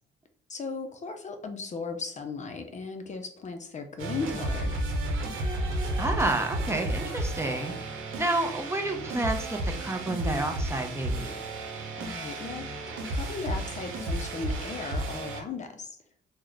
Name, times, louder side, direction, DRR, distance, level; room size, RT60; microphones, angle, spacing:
voice 1, 0.5-4.8 12.0-16.0, left 4 dB, 35° left, 6 dB, 0.5 m, -37 dB
sound 1, 4.0-15.4, right 1 dB, 85° right, 0.8 m, -32 dB
voice 2, 6.0-7.7 8.2-11.3, right 2 dB, 15° right, 3 dB, 0.6 m, -29 dB
3.1 x 2.1 x 3.8 m, 0.68 s
cardioid pair, 90°, 20 cm